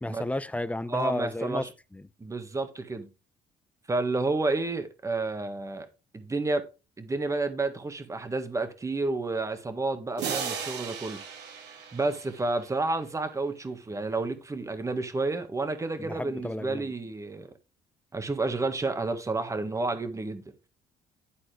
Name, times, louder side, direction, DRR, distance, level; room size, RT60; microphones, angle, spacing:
voice 1, 0.0-1.7 1.9-2.0 16.0-16.9, left 1 dB, 10° left, 0.6 m, -32 dB
voice 2, 0.9-1.7 2.2-3.1 3.9-5.9 6.1-6.6 7.0-11.2 11.9-17.5 18.1-20.4, right 3 dB, 20° right, 1.5 m, -30 dB
sound 1, 10.2-12.9, right 7 dB, 85° right, 2.4 m, -36 dB
11.5 x 4.2 x 4.9 m
cardioid pair, 110°, 17 cm